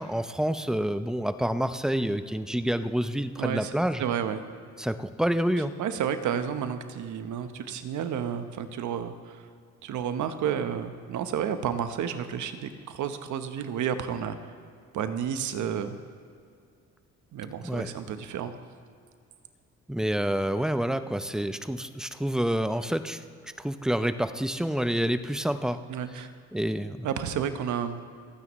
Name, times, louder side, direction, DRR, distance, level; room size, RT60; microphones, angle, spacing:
voice 1, 0.0-4.0 4.8-5.7 17.6-17.9 19.9-23.2 23.6-25.8 26.5-27.0, equal, ahead, 11 dB, 0.6 m, -28 dB
voice 2, 3.4-3.7 4.0-4.4 5.8-9.4 9.8-14.4 14.9-16.0 17.3-18.5 25.9-26.3 27.0-28.0, right 8 dB, 75° right, 9 dB, 1.0 m, -31 dB
27.5 x 9.5 x 3.1 m, 2.3 s
cardioid pair, 90°, 30 cm